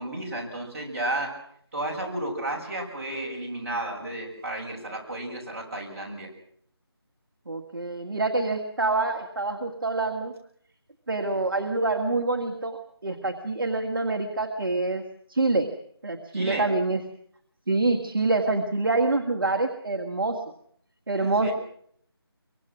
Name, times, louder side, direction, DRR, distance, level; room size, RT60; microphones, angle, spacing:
voice 1, 0.0-1.4 1.7-6.3 16.3-16.7 21.2-21.5, right 1 dB, 35° right, -3 dB, 6.9 m, -32 dB
voice 2, 7.5-10.3 11.1-15.0 15.3-15.7 16.0-17.0 17.7-20.4 21.1-21.5, right 3 dB, 55° right, 3 dB, 1.8 m, -26 dB
24.0 x 23.5 x 6.1 m, 0.66 s
figure-of-eight pair, 165°, 14 cm